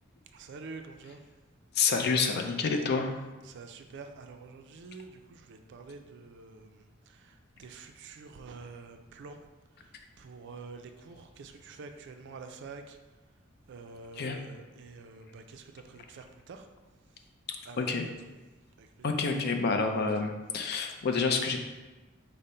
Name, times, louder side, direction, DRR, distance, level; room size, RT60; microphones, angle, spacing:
voice 1, 0.3-1.2 3.4-9.4 9.8-13.0 13.7-16.7 17.6-18.3 18.8-19.2 20.5-20.6, right 4 dB, 60° right, 6 dB, 0.4 m, -47 dB
voice 2, 1.8-3.2 14.2-14.4 17.8-18.0 19.0-21.6, left 4 dB, 55° left, 5 dB, 0.4 m, -28 dB
5.1 x 2.1 x 4.2 m, 1.2 s
head